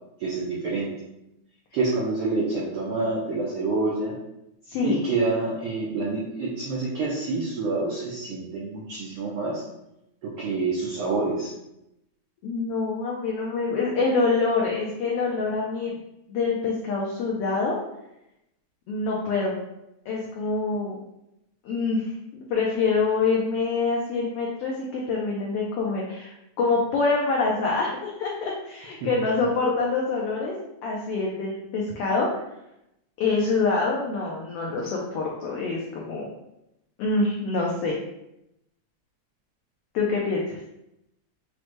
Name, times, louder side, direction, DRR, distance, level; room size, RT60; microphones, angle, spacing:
voice 1, 0.2-0.9 1.7-4.1 4.8-9.6 10.2-11.5, right 3 dB, 85° right, -4 dB, 1.2 m, -27 dB
voice 2, 4.7-5.0 12.4-15.9 16.3-17.8 18.9-19.6 20.1-21.0 21.6-30.5 30.8-32.3 33.2-36.3 37.0-38.0 39.9-40.6, left 3 dB, 85° left, -2 dB, 1.3 m, -26 dB
6.2 x 2.1 x 3.0 m, 0.85 s
omnidirectional pair, 3.3 m